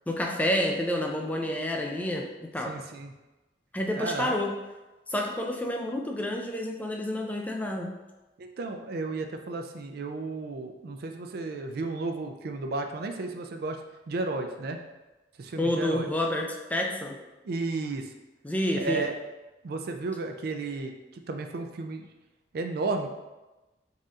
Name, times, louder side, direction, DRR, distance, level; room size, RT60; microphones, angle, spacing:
voice 1, 0.1-2.7 3.7-4.5 5.1-7.9 15.6-17.2 18.4-19.1, left 1 dB, 10° left, 0 dB, 0.4 m, -29 dB
voice 2, 2.7-3.1 4.0-4.4 8.4-13.8 14.1-14.8 15.4-16.1 17.4-18.1 18.8-19.1 19.6-22.1 22.5-23.1, right 3 dB, 60° right, 5 dB, 0.4 m, -33 dB
4.1 x 2.5 x 3.6 m, 1.1 s
head